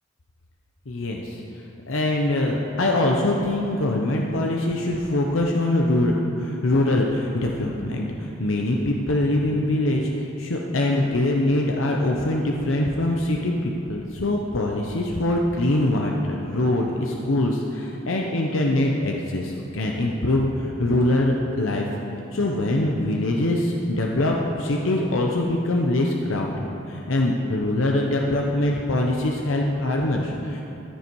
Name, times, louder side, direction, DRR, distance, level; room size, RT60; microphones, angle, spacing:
voice 1, 0.9-1.4 1.9-21.9 22.3-30.6, left 1 dB, 80° left, 0 dB, 0.9 m, -23 dB
15.0 x 10.0 x 4.7 m, 2.9 s
head